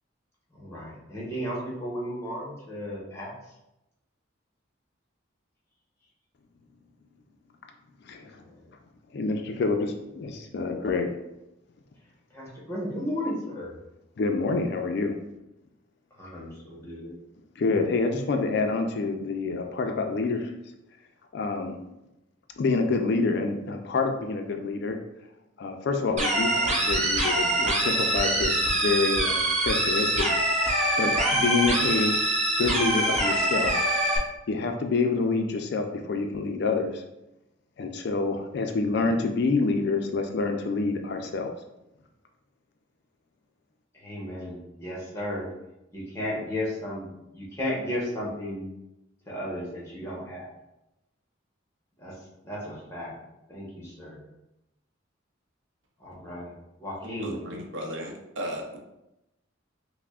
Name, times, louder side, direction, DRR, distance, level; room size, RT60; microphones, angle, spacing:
voice 1, 0.5-3.3 8.4-8.5 12.3-13.7 16.2-17.2 44.0-45.5 45.9-48.7 49.3-50.5 52.0-52.1 52.4-53.1 53.5-54.2 56.0-56.5 56.8-57.4, equal, 15° left, -5 dB, 0.9 m, -34 dB
voice 2, 8.1-8.4 9.1-11.1 14.2-15.1 17.6-20.5 21.3-21.8 22.6-25.0 25.6-30.3 31.0-32.2 32.6-33.7 34.5-37.0 37.8-41.5, left 3 dB, 60° left, 5 dB, 0.4 m, -27 dB
sound 1, 26.2-34.2, right 1 dB, 35° right, 0.7 m, -24 dB
voice 3, 57.0-58.8, right 1 dB, 70° right, 1 dB, 0.6 m, -35 dB
5.7 x 2.1 x 2.4 m, 0.91 s
head